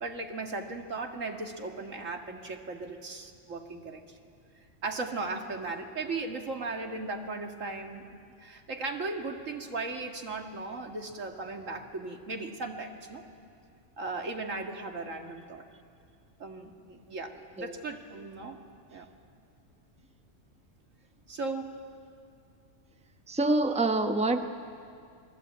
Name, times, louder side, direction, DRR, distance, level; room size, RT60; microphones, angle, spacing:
voice 1, 0.0-4.2 4.8-13.2 14.0-15.7 16.4-18.6 18.9-19.1 21.3-21.7, right 3 dB, 90° right, 3 dB, 2.3 m, -37 dB
voice 2, 23.3-24.5, right 2 dB, 5° right, 6 dB, 0.9 m, -26 dB
29.0 x 20.5 x 8.5 m, 2.3 s
omnidirectional pair, 1.3 m